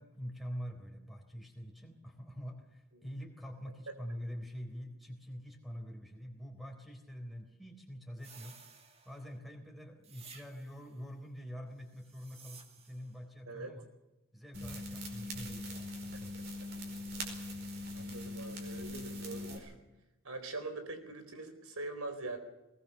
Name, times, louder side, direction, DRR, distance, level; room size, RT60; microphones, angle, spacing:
voice 1, 0.0-8.6 9.0-13.9 14.3-16.3, equal, ahead, 5 dB, 4.0 m, -45 dB
sound 1, 8.2-9.4 10.0-10.9 11.9-13.1, right 5 dB, 30° right, 2.1 m, -56 dB
sound 2, 14.5-19.6, left 1 dB, 50° right, 4.9 m, -41 dB
voice 2, 17.9-19.8 20.2-22.4, right 2 dB, 90° right, 8 dB, 4.3 m, -43 dB
21.0 x 19.5 x 6.9 m, 0.98 s
head